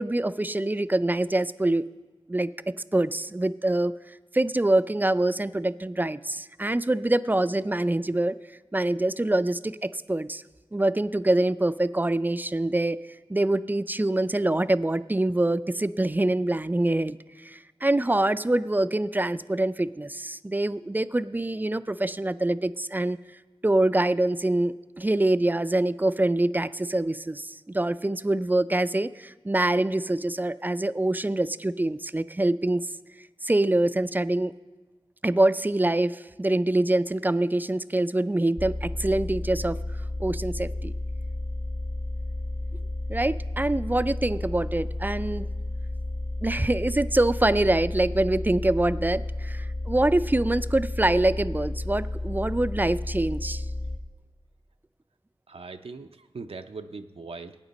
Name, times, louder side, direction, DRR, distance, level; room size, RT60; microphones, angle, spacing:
voice 1, 0.0-1.9 2.3-3.9 4.3-8.4 8.7-10.4 10.7-13.0 13.3-23.2 23.6-32.9 33.4-34.5 35.2-39.8 40.2-40.9 43.1-45.5 46.4-53.7, right 1 dB, 20° right, 15 dB, 0.3 m, -25 dB
sound 1, 38.6-54.0, left 1 dB, 35° left, 1.3 m, -32 dB
voice 2, 55.5-57.6, right 4 dB, 80° right, 7 dB, 0.5 m, -40 dB
18.0 x 8.9 x 4.0 m, 1.2 s
wide cardioid pair, 65°, 10 cm